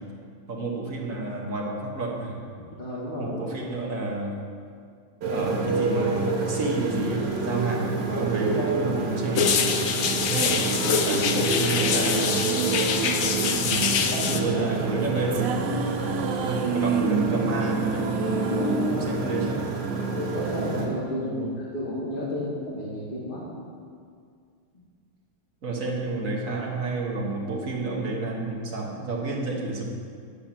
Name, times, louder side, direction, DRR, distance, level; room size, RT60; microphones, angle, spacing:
voice 1, 0.5-2.4 3.2-4.3 5.3-9.5 10.3-10.6 11.0-12.4 13.6-13.9 14.3-15.5 16.4-18.1 18.9-19.7 21.2-21.5 25.6-29.8, right 3 dB, 45° right, -2 dB, 1.5 m, -30 dB
voice 2, 2.6-3.4 8.4-9.0 14.1-14.7 15.0-15.1 18.3-19.1 20.1-23.4, left 1 dB, 25° left, -7 dB, 2.3 m, -32 dB
Motorcycle, 5.2-20.9, right 3 dB, 60° right, 1.8 m, -28 dB
sound 1, 9.4-14.4, left 6 dB, 75° left, 0.7 m, -25 dB
sound 2, 9.8-20.2, right 5 dB, 75° right, 0.8 m, -30 dB
10.0 x 4.9 x 7.5 m, 2.2 s
omnidirectional pair, 2.2 m